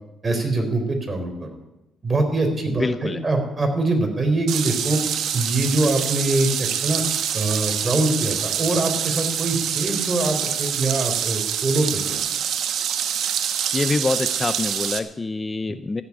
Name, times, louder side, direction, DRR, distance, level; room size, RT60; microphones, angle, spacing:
voice 1, 0.2-1.5 2.0-5.0 5.3-7.0 7.3-12.2, right 2 dB, 30° right, 4 dB, 3.9 m, -23 dB
voice 2, 2.8-3.2 13.7-16.0, left 3 dB, 25° left, 11 dB, 0.6 m, -25 dB
sound 1, 4.5-15.0, right 9 dB, 75° right, 1.1 m, -25 dB
14.5 x 7.4 x 9.5 m, 0.92 s
cardioid pair, 90°, 0 cm